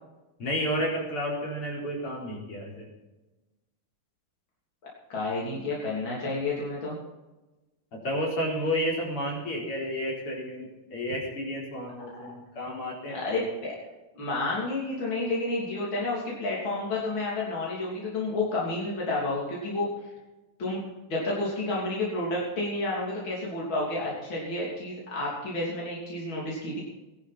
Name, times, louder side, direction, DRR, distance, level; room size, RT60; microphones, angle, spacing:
voice 1, 0.4-2.9 5.5-5.6 7.9-13.4, equal, 75° left, -3 dB, 5.3 m, -31 dB
voice 2, 5.1-7.0 13.1-13.8 14.2-19.9 20.6-20.8 21.1-26.8, left 2 dB, 60° left, -5 dB, 4.0 m, -30 dB
19.5 x 11.5 x 4.3 m, 1.1 s
omnidirectional pair, 2.4 m